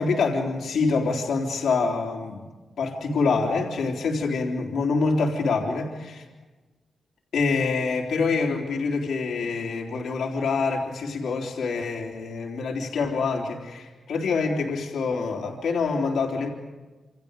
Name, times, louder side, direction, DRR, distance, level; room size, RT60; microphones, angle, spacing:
voice 1, 0.0-2.5 2.8-6.3 7.3-16.5, left 4 dB, 80° left, 0 dB, 3.7 m, -26 dB
28.5 x 28.0 x 5.3 m, 1.2 s
wide cardioid pair, 115°, 0 cm